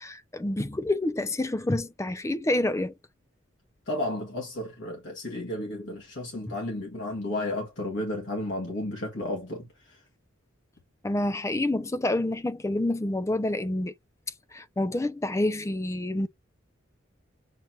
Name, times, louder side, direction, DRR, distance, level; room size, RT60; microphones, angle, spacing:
voice 1, 0.0-2.9 11.0-13.9 14.5-16.3, left 1 dB, 15° left, 0.4 m, -28 dB
voice 2, 3.9-10.0, left 1 dB, 60° left, 1.9 m, -33 dB
7.3 x 2.9 x 5.8 m
head